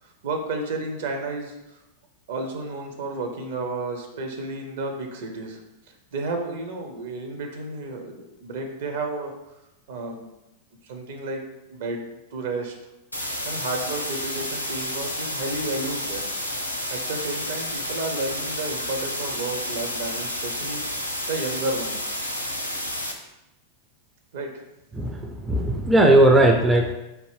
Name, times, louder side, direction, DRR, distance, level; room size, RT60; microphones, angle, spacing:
voice 1, 0.0-1.8 2.3-5.6 5.9-9.3 9.9-10.3 10.8-11.4 11.7-12.0 12.3-12.7 13.4-16.2 16.9-20.8 21.3-22.1 24.3-24.5, right 2 dB, 55° right, 3 dB, 0.6 m, -32 dB
sound 1, 13.1-23.1, left 1 dB, 90° left, 0.5 m, -30 dB
voice 2, 24.9-26.9, right 1 dB, 10° right, 2 dB, 0.4 m, -18 dB
4.5 x 2.5 x 3.3 m, 0.93 s
figure-of-eight pair, 90°, 0 cm